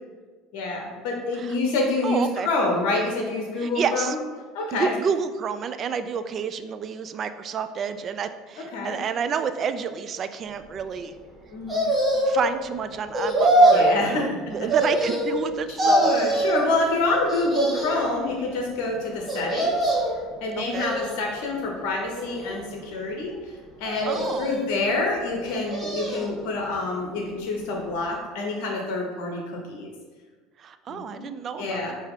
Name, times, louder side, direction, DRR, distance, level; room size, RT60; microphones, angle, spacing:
voice 1, 0.5-4.2 4.5-4.9 8.7-9.0 11.5-11.9 13.7-14.2 15.7-19.8 20.4-23.4 23.8-29.9 30.9-31.2 31.6-31.9, left 2 dB, 65° left, 0 dB, 0.7 m, -27 dB
voice 2, 2.0-2.5 3.6-4.2 4.7-11.1 12.3-16.1 20.6-20.9 24.1-24.5 30.6-31.9, right 6 dB, 40° right, 10 dB, 0.3 m, -29 dB
sound 1, 11.7-12.5 13.1-14.0 14.7-15.5 15.8-16.6 17.3-18.1 19.3-20.2 20.7-21.4 22.1-22.8 23.9-24.7 25.4-26.3 26.7-26.8, right 1 dB, 15° right, 1.4 m, -23 dB
4.6 x 2.8 x 3.6 m, 1.4 s
hypercardioid pair, 70°, 0 cm